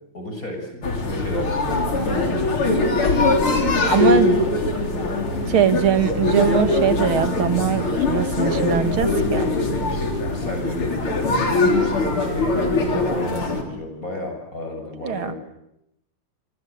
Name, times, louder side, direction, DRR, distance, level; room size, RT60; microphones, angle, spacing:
voice 1, 0.1-2.7 3.5-5.2 9.3-9.6 9.9-12.5 12.8-15.4, left 1 dB, 40° left, 3 dB, 7.3 m, -33 dB
sound 1, 0.8-13.6, left 2 dB, 85° left, 4.4 m, -21 dB
voice 2, 3.9-4.3 5.5-9.4 9.8-9.9 15.0-15.3, right 8 dB, 75° right, 10 dB, 2.5 m, -21 dB
29.0 x 23.0 x 8.1 m, 0.81 s
omnidirectional pair, 2.3 m